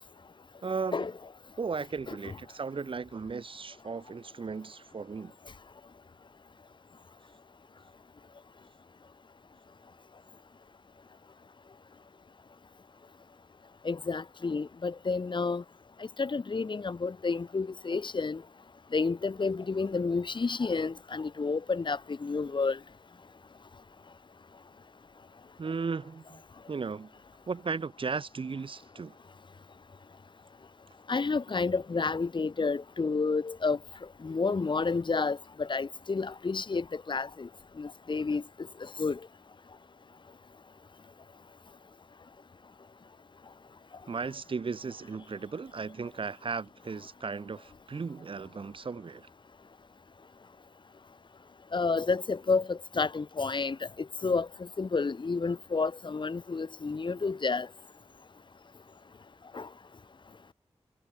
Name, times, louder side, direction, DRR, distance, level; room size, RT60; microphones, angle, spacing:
voice 1, 0.6-1.1 1.6-5.3 25.6-26.4 26.7-27.1 27.5-29.1 44.1-49.3, right 5 dB, 55° right, 0.8 m, -36 dB
voice 2, 13.8-15.6 16.2-18.4 18.9-22.8 31.1-33.8 34.2-37.5 37.8-38.4 39.0-39.2 51.7-53.8 54.2-54.5 54.8-57.7 59.5-59.7, left 4 dB, 45° left, 1.1 m, -30 dB
wide cardioid pair, 75°, 11 cm